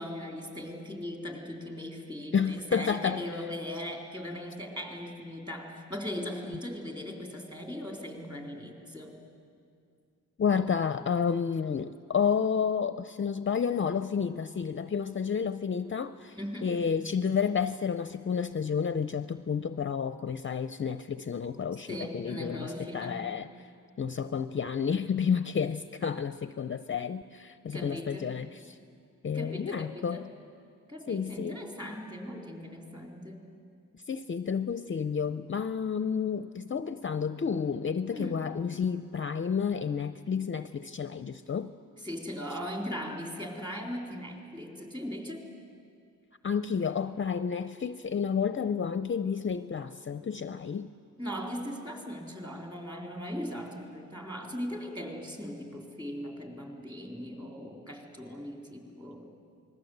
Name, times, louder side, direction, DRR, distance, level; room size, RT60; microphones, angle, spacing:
voice 1, 0.0-9.1 16.4-16.7 21.9-23.2 27.7-28.3 29.3-30.3 30.9-33.4 38.1-38.4 42.0-45.4 51.2-59.3, equal, 15° right, 2 dB, 3.8 m, -39 dB
voice 2, 2.3-3.2 10.4-23.7 24.0-28.8 29.2-30.3 31.1-31.6 33.9-41.7 46.4-50.9, left 6 dB, 40° left, 12 dB, 0.5 m, -30 dB
27.5 x 20.5 x 8.0 m, 2.3 s
wide cardioid pair, 135°, 33 cm